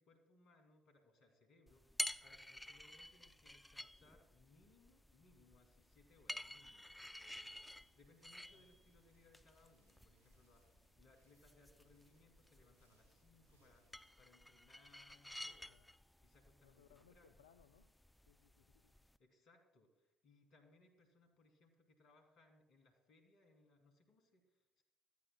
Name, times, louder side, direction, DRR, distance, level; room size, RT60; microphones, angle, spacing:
voice 1, 0.0-7.4 7.9-15.7 16.2-17.4 19.2-24.8, left 3 dB, 60° left, 5 dB, 2.8 m, -70 dB
sound 1, 1.7-19.2, left 1 dB, 5° left, 0.5 m, -52 dB
sound 2, 7.2-14.1, right 3 dB, 90° right, 4.5 m, -79 dB
voice 2, 16.6-17.9 18.3-18.9, left 8 dB, 85° left, 8 dB, 0.4 m, -68 dB
18.5 x 14.0 x 2.3 m, 0.88 s
hypercardioid pair, 55°, 0 cm